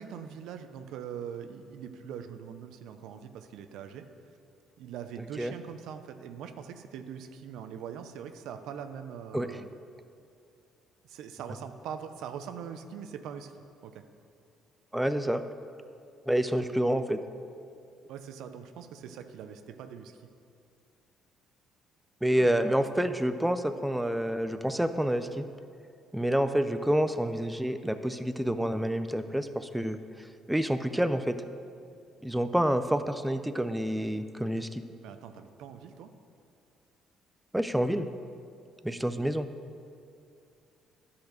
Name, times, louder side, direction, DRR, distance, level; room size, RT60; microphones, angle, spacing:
voice 1, 0.0-4.1 4.8-9.7 11.0-13.5 13.8-14.0 18.1-20.2 22.3-22.7 35.0-36.1, right 8 dB, 75° right, 8 dB, 0.5 m, -42 dB
voice 2, 14.9-15.4 16.3-17.2 22.2-25.4 26.1-30.0 30.5-31.4 32.2-34.8 37.5-38.1 38.8-39.5, equal, 5° right, 9 dB, 0.4 m, -28 dB
10.5 x 4.2 x 6.5 m, 2.4 s
supercardioid pair, 75°, 0 cm